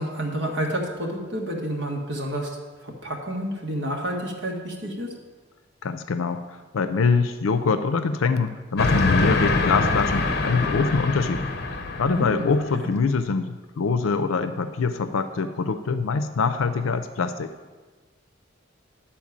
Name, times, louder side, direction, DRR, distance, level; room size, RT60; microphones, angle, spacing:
voice 1, 0.0-5.1 12.0-12.9, right 1 dB, 65° right, 0 dB, 1.7 m, -30 dB
voice 2, 5.8-6.4 6.7-11.4 12.0-17.5, left 4 dB, 90° left, 10 dB, 0.5 m, -24 dB
Train, 8.8-12.7, left 3 dB, 50° left, 0.8 m, -24 dB
10.5 x 4.4 x 7.3 m, 1.3 s
head